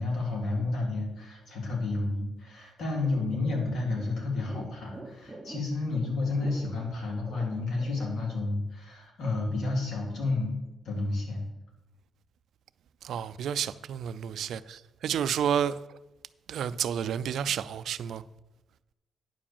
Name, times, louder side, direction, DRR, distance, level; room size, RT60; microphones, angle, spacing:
voice 1, 0.0-10.6 10.8-11.4, left 3 dB, 65° left, 2.9 m, -31 dB
sound 1, 3.0-8.3, right 2 dB, 5° right, 1.0 m, -46 dB
voice 2, 13.0-16.0 16.5-18.2, right 8 dB, 70° right, 0.3 m, -30 dB
9.6 x 5.0 x 7.1 m
wide cardioid pair, 165°, 0 cm